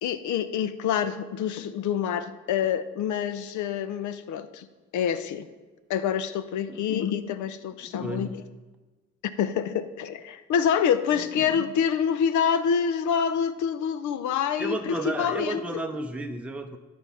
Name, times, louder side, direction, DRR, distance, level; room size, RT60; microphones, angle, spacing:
voice 1, 0.0-4.7 4.9-5.5 5.9-8.4 9.4-15.8, left 8 dB, 75° left, 13 dB, 0.6 m, -27 dB
voice 2, 7.8-8.3 11.4-11.6 14.6-16.8, right 1 dB, 5° right, 4 dB, 0.7 m, -33 dB
10.5 x 4.6 x 5.6 m, 1.3 s
cardioid pair, 90°, 30 cm